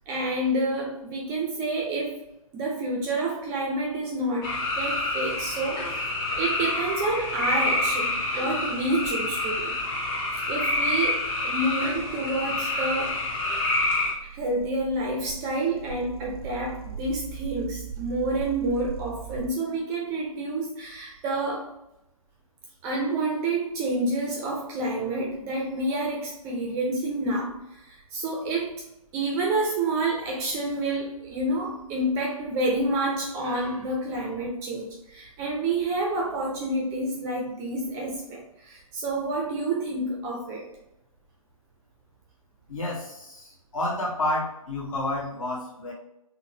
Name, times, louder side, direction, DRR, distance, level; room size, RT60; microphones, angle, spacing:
voice 1, 0.1-2.2 2.5-5.8 6.4-9.8 10.5-13.2 14.2-21.7 22.8-28.7 29.1-40.6, right 2 dB, 15° right, -2 dB, 0.4 m, -28 dB
sound 1, 4.4-14.1, left 2 dB, 20° left, 0.7 m, -27 dB
sound 2, 11.5-19.5, right 8 dB, 75° right, 0.5 m, -41 dB
voice 2, 42.7-45.9, left 1 dB, 65° left, -4 dB, 1.3 m, -30 dB
3.8 x 2.1 x 2.7 m, 0.85 s
hypercardioid pair, 145°, 19 cm